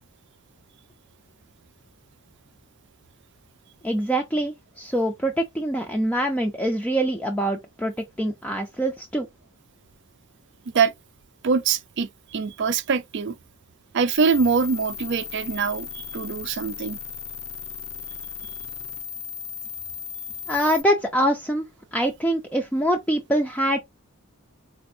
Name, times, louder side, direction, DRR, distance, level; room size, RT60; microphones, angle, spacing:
voice 1, 3.8-9.3 20.5-21.7 21.9-23.8, right 1 dB, 5° left, 0.5 m, -24 dB
voice 2, 11.4-13.4 13.9-17.0, right 5 dB, 55° right, 0.4 m, -23 dB
sound 1, 14.2-20.8, left 7 dB, 75° left, 0.9 m, -36 dB
4.0 x 2.5 x 2.6 m
head